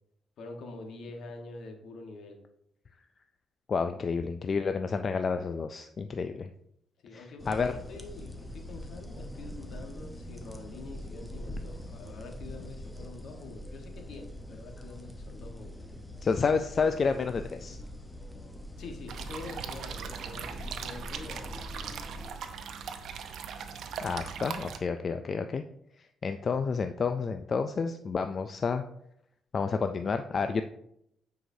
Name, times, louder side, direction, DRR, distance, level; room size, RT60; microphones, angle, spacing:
voice 1, 0.4-2.4 7.0-15.8 18.8-21.7, left 3 dB, 70° left, 4 dB, 1.2 m, -45 dB
voice 2, 3.7-6.5 7.1-7.8 16.2-17.8 24.0-25.6 26.2-28.8 29.5-30.6, left 5 dB, 45° left, 8 dB, 0.3 m, -30 dB
sound 1, 7.4-22.3, left 1 dB, 10° left, 0.9 m, -43 dB
sound 2, 19.1-24.8, right 7 dB, 70° right, 0.6 m, -39 dB
8.9 x 4.8 x 2.7 m, 0.75 s
cardioid pair, 90°, 0 cm